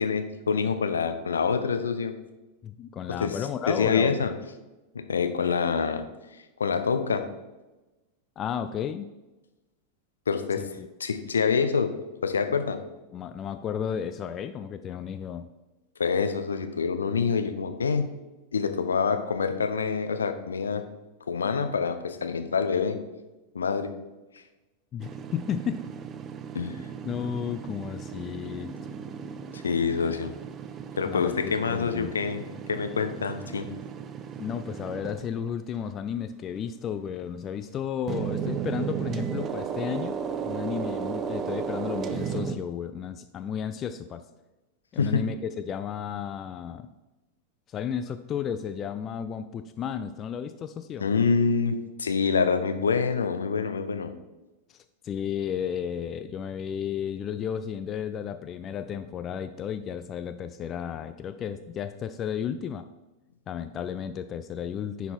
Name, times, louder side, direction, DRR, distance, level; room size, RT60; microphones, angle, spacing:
voice 1, 0.0-2.1 3.2-3.4 3.7-4.3 4.9-6.0 6.6-7.2 10.3-10.6 11.0-11.9 12.2-12.8 16.0-18.1 18.5-20.8 21.3-23.0 23.5-23.9 26.5-26.8 29.5-30.3 31.0-32.4 32.7-33.7 45.0-45.2 51.0-54.1, left 5 dB, 70° left, 8 dB, 0.7 m, -26 dB
voice 2, 2.6-4.3 8.4-9.1 10.6-10.9 13.1-15.5 24.9-25.8 27.0-28.7 31.0-32.1 34.4-44.2 44.9-46.9 47.7-51.1 54.7-62.9 63.5-65.1, left 8 dB, 30° left, 9 dB, 0.3 m, -33 dB
sound 1, 25.0-35.5 38.1-42.6, right 7 dB, 25° right, 0.5 m, -35 dB
10.0 x 4.1 x 4.5 m, 1.1 s
figure-of-eight pair, 90°, 0 cm